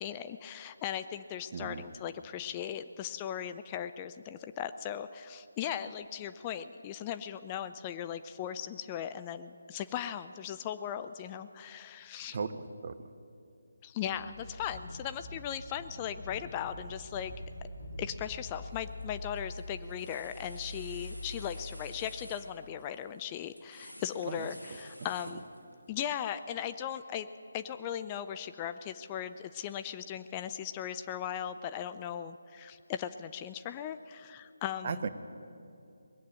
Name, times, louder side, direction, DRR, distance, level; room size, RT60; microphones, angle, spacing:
voice 1, 0.0-12.4 13.8-17.3 18.0-25.4 25.9-27.3 27.5-35.1, left 9 dB, 20° left, 10 dB, 0.4 m, -38 dB
voice 2, 1.5-1.8 12.3-12.6 12.8-12.9 24.3-24.5 34.8-35.1, right 5 dB, 45° right, 12 dB, 0.7 m, -35 dB
sound 1, 14.0-22.1, left 1 dB, 70° left, 3.3 m, -44 dB
sound 2, 18.7-19.0 19.4-25.9, equal, 90° left, 1.6 m, -52 dB
20.5 x 8.4 x 7.7 m, 2.6 s
figure-of-eight pair, 150°, 0 cm